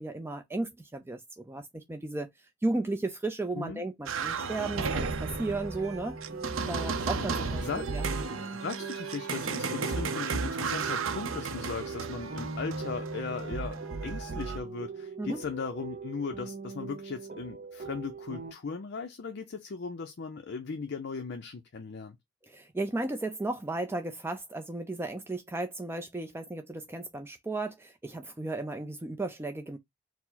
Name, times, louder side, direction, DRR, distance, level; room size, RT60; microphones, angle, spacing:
voice 1, 0.0-6.2 6.7-8.1 15.2-15.4 22.4-29.8, right 2 dB, 10° right, 0.4 m, -35 dB
sound 1, 4.1-14.6, right 4 dB, 75° right, 0.6 m, -34 dB
sound 2, 4.7-18.5, right 4 dB, 40° right, 0.7 m, -41 dB
voice 2, 6.6-7.2 7.6-7.9 8.6-22.2, left 5 dB, 55° left, 0.5 m, -38 dB
4.6 x 2.0 x 3.9 m
head